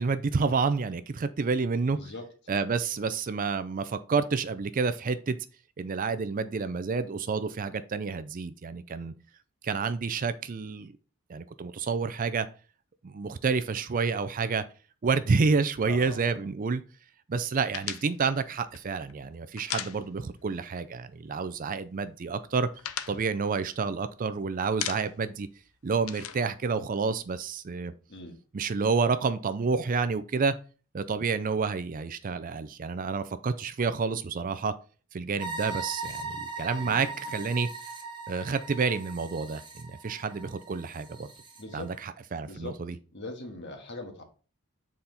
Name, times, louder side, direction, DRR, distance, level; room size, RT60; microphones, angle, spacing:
voice 1, 0.0-2.0 2.5-5.4 5.8-9.1 9.6-10.9 11.3-12.5 13.0-14.6 15.0-16.8 17.3-22.7 23.1-25.5 25.8-27.9 28.5-30.6 30.9-34.7 35.1-37.7 38.3-41.3 41.7-42.9, right 4 dB, 40° right, 13 dB, 0.4 m, -29 dB
voice 2, 1.9-2.3 15.8-16.4 28.1-28.4 36.8-37.1 41.6-41.9 42.4-42.8 43.1-44.2, left 2 dB, 50° left, 3 dB, 1.7 m, -41 dB
sound 1, 17.7-20.5 20.8-21.0 21.3-21.9 22.3-24.3 24.6-25.4 25.6-27.4, left 11 dB, 70° left, 0.6 m, -38 dB
sound 2, 35.4-41.6, right 3 dB, 20° right, 1.2 m, -39 dB
7.6 x 4.2 x 4.0 m, 0.37 s
head